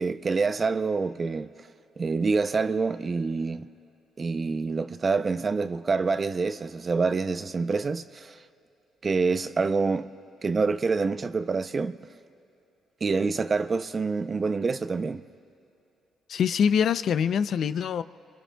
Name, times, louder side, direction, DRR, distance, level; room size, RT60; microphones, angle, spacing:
voice 1, 0.0-1.5 2.0-3.7 4.2-8.4 9.0-10.1 10.4-12.0 13.0-15.2, right 4 dB, 35° right, 0.5 m, -26 dB
voice 2, 16.3-18.0, left 7 dB, 65° left, 0.4 m, -24 dB
26.5 x 24.0 x 2.3 m
cardioid pair, 90°, 0 cm